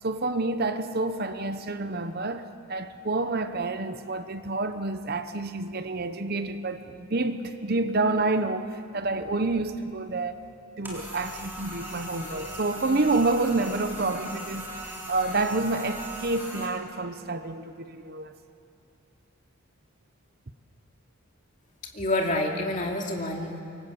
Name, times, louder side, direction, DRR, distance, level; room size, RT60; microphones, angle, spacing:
voice 1, 0.0-10.4 10.8-14.7 15.1-18.3, right 2 dB, 45° right, 0.9 m, -28 dB
sound 1, 10.8-16.7, right 1 dB, 10° right, 4.0 m, -39 dB
voice 2, 21.9-23.6, left 1 dB, 35° left, 2.6 m, -28 dB
26.0 x 23.5 x 8.2 m
head